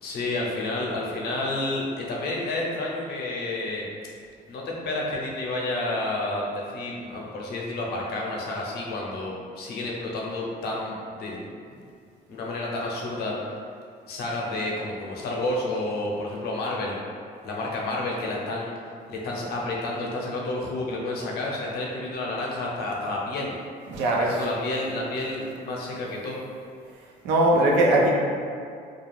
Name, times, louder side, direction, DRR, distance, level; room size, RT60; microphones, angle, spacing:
voice 1, 0.0-3.9 4.5-11.5 12.3-13.4 14.1-17.0 17.4-18.7 19.1-23.6 24.1-26.4, left 2 dB, 70° left, -3 dB, 0.6 m, -30 dB
voice 2, 23.9-24.4 27.2-28.1, right 1 dB, 90° right, -2 dB, 0.5 m, -20 dB
2.4 x 2.3 x 3.2 m, 2.3 s
cardioid pair, 110°, 17 cm